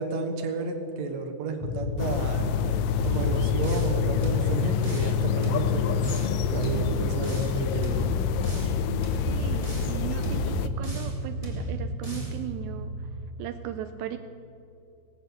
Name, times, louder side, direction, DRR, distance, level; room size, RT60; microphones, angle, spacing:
voice 1, 0.0-2.5 3.0-6.2 6.5-8.1, right 4 dB, 60° right, 5 dB, 2.3 m, -32 dB
sound 1, 1.6-13.3, left 4 dB, 65° left, 1.5 m, -30 dB
sound 2, 2.0-10.7, left 10 dB, 85° left, 2.3 m, -30 dB
sound 3, 3.0-4.0 4.2-5.2 5.4-6.4 6.6-7.6 7.8-8.8 9.0-10.0 10.2-11.2 11.4-12.4, right 2 dB, 10° right, 2.4 m, -35 dB
voice 2, 9.3-13.1 13.4-14.2, right 11 dB, 80° right, 8 dB, 1.7 m, -37 dB
18.5 x 8.7 x 6.8 m, 2.7 s
omnidirectional pair, 3.8 m